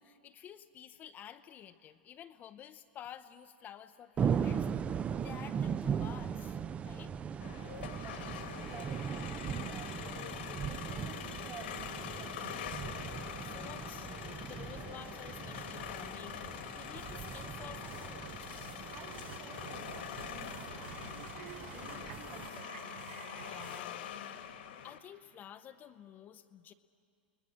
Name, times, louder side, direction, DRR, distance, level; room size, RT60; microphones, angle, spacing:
voice 1, 0.0-4.7 5.2-7.1 13.4-16.4 16.8-18.3 23.5-24.1 24.8-26.7, left 10 dB, 30° left, 9 dB, 0.7 m, -51 dB
sound 1, 4.2-22.5, right 7 dB, 20° right, 0.5 m, -39 dB
sound 2, 7.4-25.0, left 9 dB, 70° left, 1.7 m, -44 dB
voice 2, 7.9-10.3 10.6-12.9 18.9-20.8 21.1-23.0, right 7 dB, 40° right, 4 dB, 2.6 m, -52 dB
sound 3, 16.9-23.8, right 10 dB, 75° right, 0.5 m, -51 dB
29.5 x 20.0 x 7.5 m, 2.5 s
hypercardioid pair, 115°, 6 cm